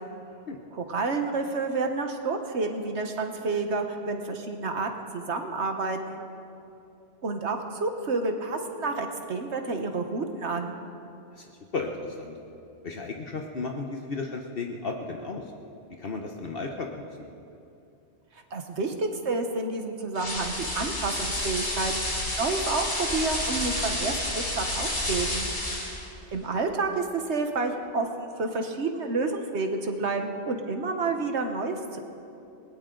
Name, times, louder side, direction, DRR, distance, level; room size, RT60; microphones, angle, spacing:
voice 1, 0.7-6.2 7.2-10.7 18.5-21.9 22.3-25.5 26.3-32.0, right 3 dB, 85° right, 5 dB, 1.5 m, -29 dB
voice 2, 11.3-12.4 12.8-15.5 16.0-17.3, left 3 dB, 60° left, 2 dB, 1.2 m, -34 dB
sound 1, 20.2-26.1, left 1 dB, 90° left, 3.6 m, -30 dB
20.0 x 18.5 x 3.9 m, 2.8 s
omnidirectional pair, 1.1 m